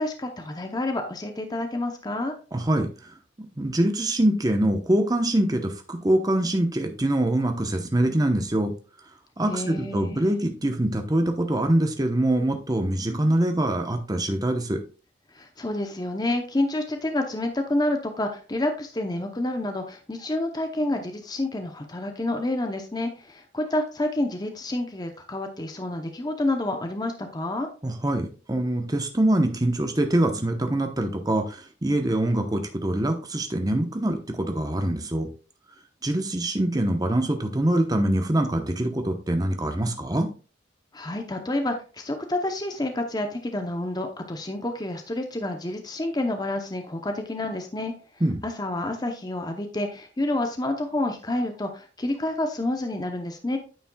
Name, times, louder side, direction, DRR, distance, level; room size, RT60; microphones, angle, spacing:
voice 1, 0.0-2.3 9.5-10.3 15.3-27.7 40.9-47.9 48.4-53.6, left 1 dB, 20° left, 5 dB, 0.7 m, -29 dB
voice 2, 2.5-8.7 9.4-14.8 27.8-35.3 36.0-40.3 48.2-48.4, right 1 dB, 20° right, 5 dB, 0.9 m, -24 dB
9.3 x 7.2 x 2.3 m, 0.35 s
head